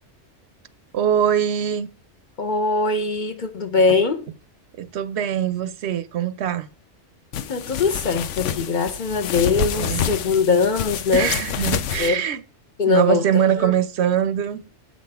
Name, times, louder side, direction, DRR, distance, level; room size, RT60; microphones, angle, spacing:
voice 1, 0.9-1.9 4.8-6.7 9.8-10.1 11.1-12.4 12.9-14.6, right 9 dB, 70° right, 0.8 m, -22 dB
voice 2, 2.4-4.3 7.5-11.3 12.0-12.2 12.8-13.2 13.6-13.7, left 4 dB, 45° left, 0.8 m, -21 dB
sound 1, 7.3-12.1, left 9 dB, 85° left, 0.9 m, -27 dB
7.8 x 5.3 x 3.4 m
omnidirectional pair, 1.2 m